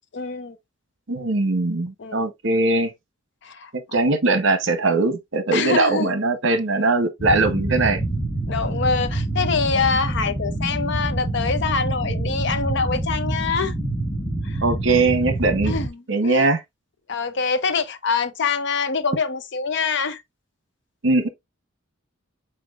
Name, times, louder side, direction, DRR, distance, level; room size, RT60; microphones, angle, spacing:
voice 1, 0.1-0.6 2.0-2.2 3.4-4.0 5.5-6.1 8.5-13.7 14.4-14.6 15.7-16.0 16.2-16.5 17.1-20.2, left 5 dB, 55° left, 0.6 m, -25 dB
voice 2, 1.1-2.9 3.7-8.0 14.6-15.7 16.1-16.6 21.0-21.3, right 3 dB, 60° right, 0.9 m, -20 dB
sound 1, 7.2-15.9, right 1 dB, 20° left, 1.4 m, -26 dB
4.5 x 4.3 x 2.4 m
head